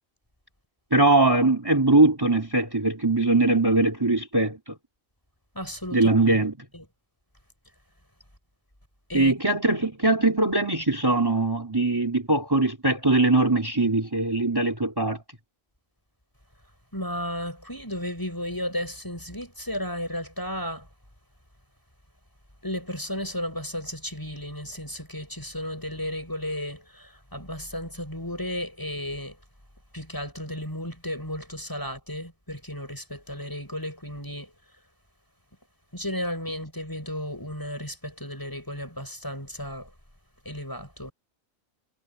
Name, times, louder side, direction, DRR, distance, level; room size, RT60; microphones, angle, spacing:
voice 1, 0.9-4.7 5.9-6.5 9.1-15.2, right 2 dB, 15° right, 3.5 m, -21 dB
voice 2, 5.6-6.0 6.7-6.9 9.1-9.3 16.9-20.9 22.6-29.4 29.9-34.5 35.9-39.9 40.5-41.1, left 1 dB, 15° left, 6.9 m, -34 dB
omnidirectional pair, 1.4 m